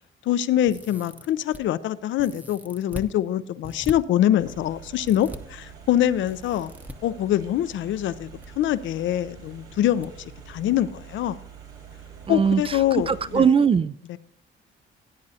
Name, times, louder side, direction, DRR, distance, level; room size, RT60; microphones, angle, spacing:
voice 1, 0.3-6.7 7.0-8.3 8.6-10.1 10.5-11.4 12.3-13.5 14.1-14.2, left 12 dB, 75° left, 15 dB, 0.6 m, -24 dB
sound 1, 0.7-1.6 2.2-3.1 3.6-3.9 5.0-5.4 6.3-6.9 8.1-8.5 8.7-8.8 10.0-10.1 10.5-10.6, equal, 5° right, 0.8 m, -40 dB
sound 2, 4.4-13.5, right 7 dB, 85° right, 2.4 m, -45 dB
voice 2, 12.3-12.6 13.1-13.9, right 6 dB, 30° right, 16 dB, 0.3 m, -20 dB
17.0 x 8.5 x 2.8 m, 0.65 s
cardioid pair, 90°, 20 cm